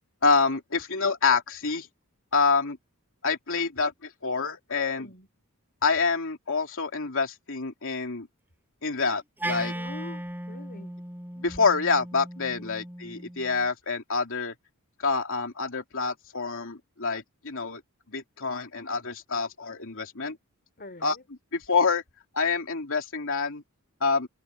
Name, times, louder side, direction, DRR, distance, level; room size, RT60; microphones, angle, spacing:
voice 1, 0.2-1.9 2.3-2.8 3.2-5.1 5.8-8.3 8.8-9.7 11.4-14.5 15.0-17.8 18.1-20.4 21.0-21.1 21.7-22.0 22.3-23.6 24.0-24.3, left 4 dB, 60° left, 3.0 m, -27 dB
voice 2, 5.0-5.3 9.7-10.9 12.5-12.9 20.8-21.2, left 2 dB, 45° left, 3.8 m, -45 dB
Wind instrument woodwind instrument, 9.4-13.7, right 1 dB, 10° right, 7.1 m, -37 dB
head